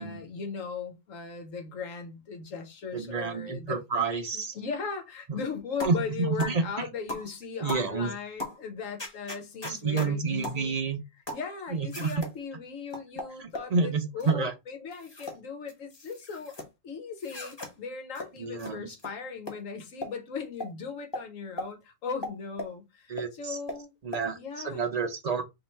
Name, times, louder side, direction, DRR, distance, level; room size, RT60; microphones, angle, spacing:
voice 1, 0.0-3.8 4.3-10.8 11.3-16.5 16.8-23.9 24.4-24.9, left 5 dB, 85° left, 1.4 m, -38 dB
voice 2, 2.9-4.5 5.8-6.9 7.6-8.1 9.6-11.0 11.7-12.3 13.4-14.5 18.4-18.9 23.1-23.6 24.0-25.4, right 4 dB, 45° right, 0.5 m, -29 dB
sound 1, 5.8-6.0 6.4-6.6 7.1-7.3 7.7-7.9 8.4-8.6 9.0-10.1 10.4-10.6 11.3-11.5 11.9-12.3 12.9-13.7 14.2-14.4 14.9-15.4 15.7-16.7 17.2-17.7 18.2-18.3 18.6-18.7 19.0-19.1 19.5-19.6 20.0-20.1 20.6-20.7 21.1-21.3 21.6-21.7 22.2-22.7 23.2-23.3 23.7-23.8 24.1-24.2, left 1 dB, 20° left, 1.0 m, -37 dB
3.1 x 2.9 x 4.4 m
omnidirectional pair, 1.3 m